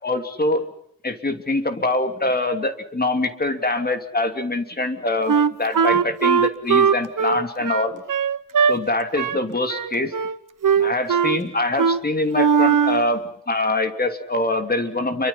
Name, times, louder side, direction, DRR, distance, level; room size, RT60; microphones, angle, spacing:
voice 1, 0.0-0.7 1.0-8.0 8.6-10.1 10.8-15.3, left 2 dB, 25° left, 7 dB, 2.9 m, -24 dB
Wind instrument woodwind instrument, 5.3-8.8 9.2-9.4 9.7-10.4 10.6-11.4 11.8-12.0 12.3-13.0, right 6 dB, 65° right, 1.1 m, -19 dB
30.0 x 24.0 x 5.8 m, 0.70 s
wide cardioid pair, 135°, 35 cm